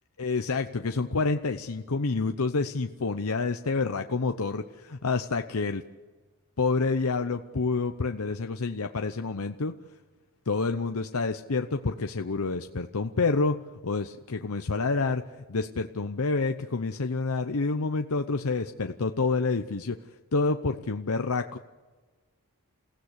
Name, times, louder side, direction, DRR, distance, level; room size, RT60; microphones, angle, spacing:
voice 1, 0.2-5.8 6.6-9.7 10.5-13.6 13.8-20.0 20.3-21.6, left 3 dB, 75° left, 6 dB, 0.8 m, -28 dB
28.5 x 16.0 x 8.2 m, 1.3 s
head